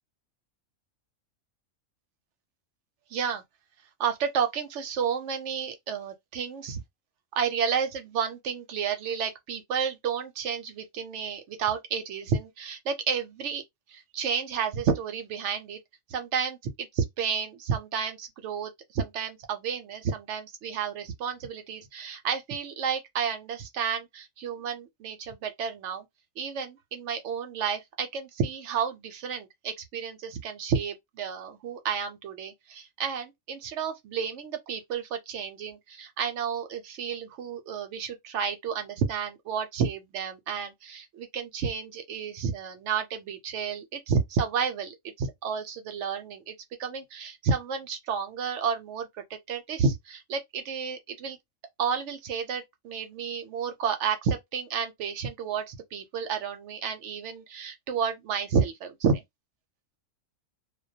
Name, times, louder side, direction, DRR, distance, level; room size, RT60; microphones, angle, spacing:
voice 1, 3.1-3.4 4.0-6.8 7.3-13.6 13.9-15.8 16.1-26.1 26.4-46.5 46.8-51.4 51.8-59.2, right 6 dB, 70° right, 0.8 m, -31 dB
2.2 x 2.2 x 2.6 m
omnidirectional pair, 1.4 m